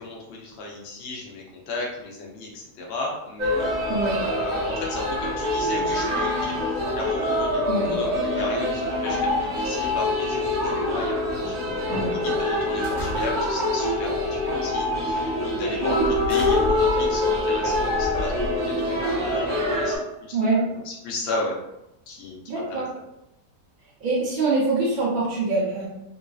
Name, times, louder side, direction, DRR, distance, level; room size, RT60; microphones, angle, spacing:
voice 1, 0.0-6.6 6.9-16.0 16.3-18.1 18.6-20.4 20.9-21.6 22.1-22.8, left 2 dB, 65° left, -2 dB, 0.6 m, -34 dB
sound 1, 3.4-20.0, left 1 dB, 45° right, 0.7 m, -25 dB
voice 2, 11.9-12.4 15.8-16.1 20.3-20.6 22.5-22.9 24.0-25.9, right 3 dB, 75° right, -5 dB, 0.4 m, -24 dB
sound 2, 12.8-13.7 14.5-14.7 15.2-15.3 16.0-18.9, left 2 dB, 60° right, 1.3 m, -34 dB
3.1 x 2.5 x 2.3 m, 0.88 s
omnidirectional pair, 1.8 m